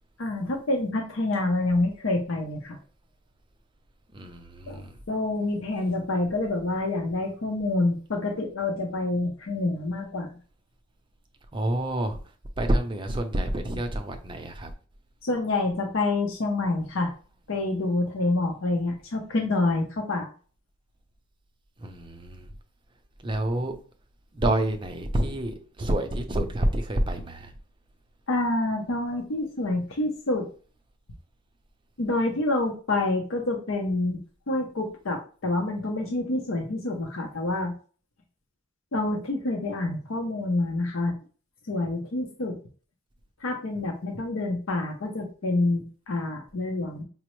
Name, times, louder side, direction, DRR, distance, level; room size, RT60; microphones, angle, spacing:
voice 1, 0.2-2.8 4.7-10.3 15.2-17.1 17.5-20.3 28.3-30.5 32.0-34.2 34.5-37.7 38.9-41.1 41.7-42.6 43.4-47.0, left 2 dB, 80° left, 3 dB, 0.6 m, -27 dB
voice 2, 4.1-5.0 11.5-12.2 12.6-14.7 21.8-22.5 23.2-23.8 24.3-27.5, right 1 dB, 25° right, 5 dB, 0.5 m, -28 dB
4.9 x 2.0 x 3.1 m, 0.38 s
head